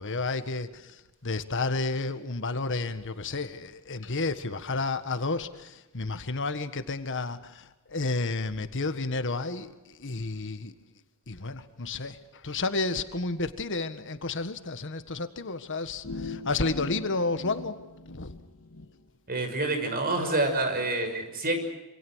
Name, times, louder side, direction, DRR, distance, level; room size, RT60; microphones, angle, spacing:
voice 1, 0.0-10.7 11.3-17.8 18.1-18.3, left 3 dB, 60° left, 1.6 m, -31 dB
sound 1, 16.0-18.9, left 2 dB, 85° left, 2.0 m, -40 dB
voice 2, 19.3-21.6, right 2 dB, 45° right, 6.3 m, -27 dB
27.0 x 26.0 x 6.4 m
head